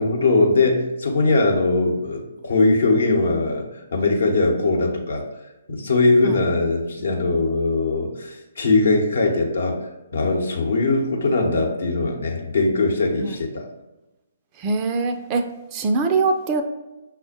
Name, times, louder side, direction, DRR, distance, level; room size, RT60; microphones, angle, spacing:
voice 1, 0.0-3.6 3.9-5.2 5.7-9.8 10.1-13.6, left 3 dB, 60° left, 1 dB, 0.9 m, -20 dB
voice 2, 14.6-16.6, right 3 dB, 25° right, 6 dB, 0.3 m, -23 dB
5.9 x 2.1 x 4.2 m, 1.0 s
figure-of-eight pair, 130°, 0 cm